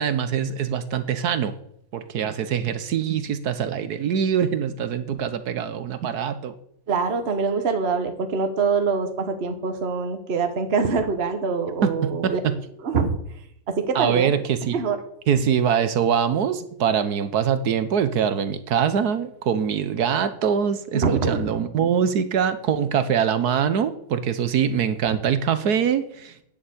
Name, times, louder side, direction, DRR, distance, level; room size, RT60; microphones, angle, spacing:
voice 1, 0.0-1.5 1.9-6.5 11.8-12.5 13.9-14.8 15.3-26.4, right 7 dB, 60° right, 12 dB, 1.2 m, -23 dB
voice 2, 6.9-12.4 12.8-13.1 13.7-14.3 14.7-15.0 20.9-21.4, right 5 dB, 35° right, 7 dB, 1.4 m, -24 dB
10.0 x 7.1 x 8.5 m, 0.71 s
omnidirectional pair, 2.4 m